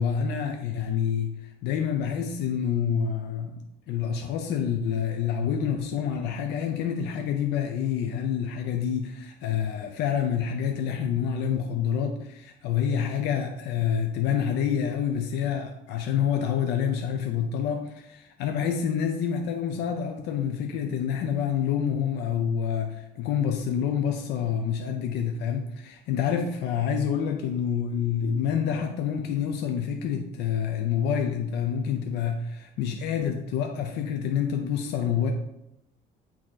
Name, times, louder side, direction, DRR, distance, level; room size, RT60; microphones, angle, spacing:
voice 1, 0.0-1.3 1.6-3.6 3.9-35.3, left 8 dB, 85° left, 4 dB, 0.6 m, -27 dB
8.6 x 2.9 x 3.8 m, 0.83 s
cardioid pair, 110°, 17 cm